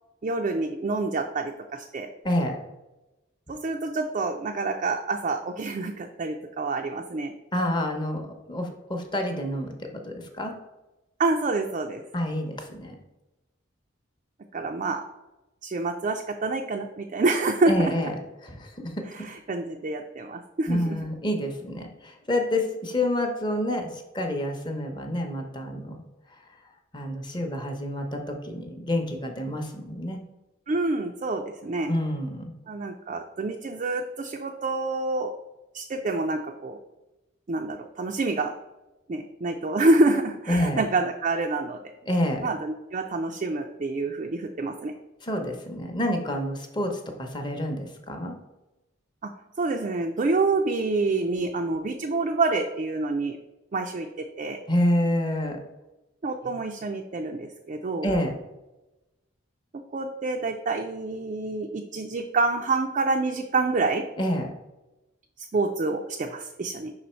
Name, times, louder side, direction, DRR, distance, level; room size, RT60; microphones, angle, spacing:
voice 1, 0.2-2.1 3.5-7.3 11.2-12.0 14.5-15.0 15.6-17.9 19.1-21.0 30.7-31.9 32.7-35.3 35.7-36.8 37.5-38.5 39.1-41.8 42.4-44.9 49.2-49.3 49.6-53.4 53.7-54.6 56.2-58.1 59.9-64.0 65.4-66.9, right 3 dB, 35° right, 3 dB, 0.3 m, -27 dB
voice 2, 2.2-2.6 7.5-10.5 12.1-13.0 17.7-18.1 18.4-19.0 20.7-26.0 26.9-30.2 31.9-32.5 40.5-40.8 42.1-42.5 45.2-48.3 54.7-55.6 56.4-56.5 58.0-58.4 64.2-64.5, left 1 dB, 20° left, 3 dB, 0.7 m, -28 dB
5.4 x 4.0 x 4.3 m, 1.0 s
head